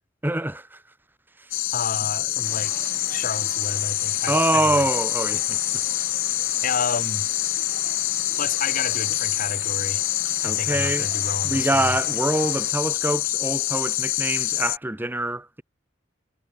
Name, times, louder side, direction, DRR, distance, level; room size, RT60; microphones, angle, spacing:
voice 1, 0.2-0.8 4.3-5.8 10.4-11.1 11.4-15.6, right 1 dB, 10° right, 1.1 m, -25 dB
sound 1, 1.5-14.8, left 17 dB, 80° left, 0.5 m, -26 dB
voice 2, 1.7-4.8 6.6-7.3 8.4-10.0 10.4-11.9, left 5 dB, 45° left, 0.9 m, -31 dB
sound 2, 2.4-12.7, right 5 dB, 55° right, 2.2 m, -42 dB
head